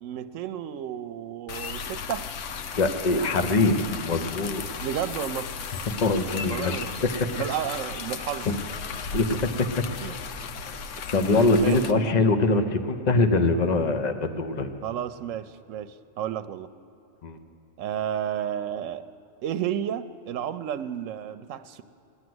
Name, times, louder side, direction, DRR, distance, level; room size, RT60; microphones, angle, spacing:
voice 1, 0.0-2.2 4.8-5.5 6.3-6.9 7.2-8.5 10.0-10.2 11.2-12.0 14.8-16.7 17.8-19.0 19.4-21.8, right 10 dB, 85° right, 12 dB, 1.0 m, -32 dB
sound 1, 1.5-11.9, left 6 dB, 75° left, 1.0 m, -35 dB
voice 2, 2.8-4.6 6.0-6.7 7.0-7.3 8.5-8.6 9.1-9.9 11.1-14.7 17.2-17.4, left 3 dB, 40° left, 8 dB, 0.9 m, -23 dB
17.0 x 10.5 x 7.8 m, 2.9 s
omnidirectional pair, 1.3 m